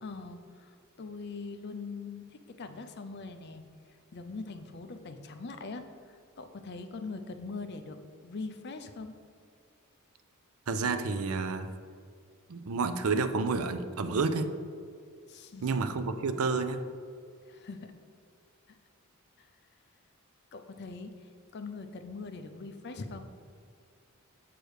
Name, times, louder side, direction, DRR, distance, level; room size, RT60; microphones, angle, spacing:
voice 1, 0.0-3.6 4.1-9.1 15.3-15.8 17.5-17.9 19.4-19.5 20.5-23.3, left 3 dB, 50° left, 8 dB, 0.5 m, -42 dB
voice 2, 10.7-11.7 12.5-14.5 15.6-16.8, right 4 dB, 70° right, 9 dB, 0.5 m, -30 dB
7.6 x 3.4 x 6.3 m, 2.2 s
head